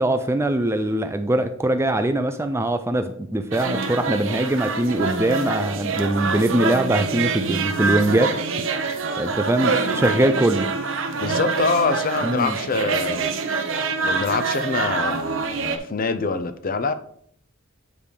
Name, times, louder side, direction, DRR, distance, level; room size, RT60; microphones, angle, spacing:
voice 1, 0.0-8.3 9.2-10.7 12.2-12.6, right 1 dB, 10° right, 9 dB, 0.3 m, -22 dB
sound 1, 3.5-15.8, right 4 dB, 60° right, 0.7 m, -25 dB
voice 2, 11.2-13.3 14.0-16.9, left 4 dB, 40° left, 10 dB, 0.5 m, -25 dB
9.6 x 3.3 x 5.1 m, 0.64 s
head